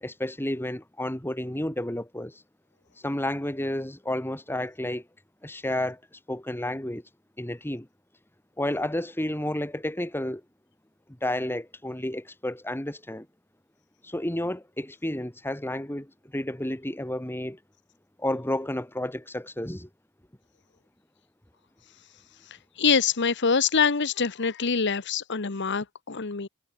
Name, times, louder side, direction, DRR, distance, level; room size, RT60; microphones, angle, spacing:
voice 1, 0.0-2.4 3.0-5.1 5.4-7.0 7.4-7.9 8.6-10.4 11.2-13.3 14.0-17.6 18.2-19.9, left 1 dB, 10° left, 1.8 m, -31 dB
voice 2, 22.8-26.5, left 5 dB, 55° left, 1.1 m, -25 dB
head